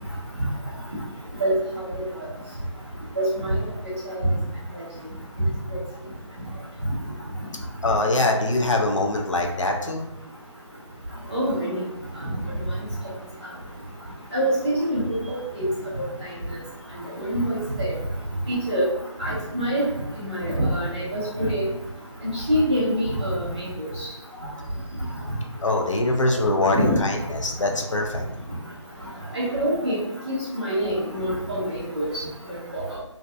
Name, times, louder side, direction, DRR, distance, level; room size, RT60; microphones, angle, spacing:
voice 1, 3.2-3.6 4.1-4.3 11.3-11.8 12.2-12.3 14.3-15.6 17.2-17.9 18.5-18.9 19.2-19.8 20.2-21.6 22.3-23.9 26.7-26.9 29.3-30.0 30.3-32.1 32.7-32.8, equal, 15° right, -14 dB, 0.4 m, -25 dB
voice 2, 7.8-10.0 25.6-28.2, left 2 dB, 80° left, 2 dB, 0.5 m, -23 dB
2.6 x 2.1 x 2.4 m, 0.90 s
figure-of-eight pair, 160°, 16 cm